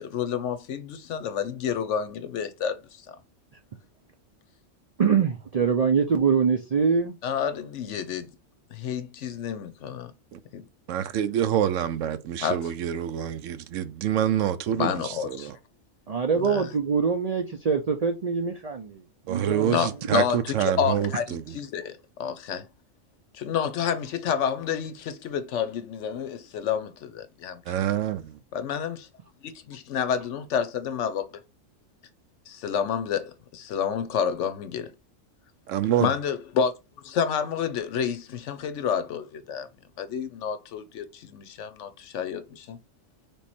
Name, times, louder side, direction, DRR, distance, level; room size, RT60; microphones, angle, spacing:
voice 1, 0.0-3.2 7.2-8.3 8.7-10.1 10.5-10.6 12.4-12.6 14.8-15.5 16.3-16.7 19.6-22.7 23.3-27.6 28.5-29.1 29.4-31.4 32.5-34.9 36.0-36.7 37.0-39.7 40.0-42.8, left 7 dB, 70° left, 0.9 m, -29 dB
voice 2, 5.0-7.1 16.1-19.0 19.3-19.8, right 6 dB, 60° right, 0.4 m, -24 dB
voice 3, 10.9-15.6 19.3-21.6 27.7-28.4 35.7-36.1, right 10 dB, 80° right, 0.9 m, -27 dB
3.5 x 3.1 x 4.1 m
omnidirectional pair, 1.3 m